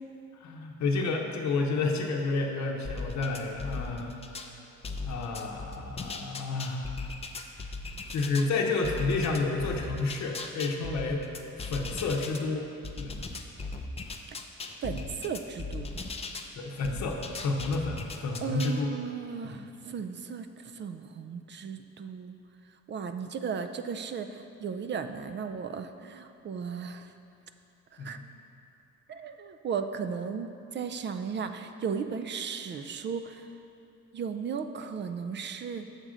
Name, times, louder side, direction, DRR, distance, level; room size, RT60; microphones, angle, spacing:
voice 1, 0.4-4.2 5.1-7.0 8.1-11.3 11.6-12.7 13.0-13.3 16.5-18.9 19.4-19.7 28.0-28.3, left 3 dB, 65° left, 1 dB, 0.8 m, -30 dB
sound 1, 2.8-4.5 4.8-8.5 8.8-12.4 12.8-16.5 16.8-18.8, left 3 dB, 20° left, 0.5 m, -38 dB
voice 2, 14.8-15.9 18.4-20.5 20.7-22.3 22.9-27.1 28.0-28.2 29.1-33.5 34.1-35.9, right 6 dB, 40° right, 8 dB, 0.4 m, -35 dB
6.7 x 3.7 x 6.2 m, 2.8 s
cardioid pair, 90°, 30 cm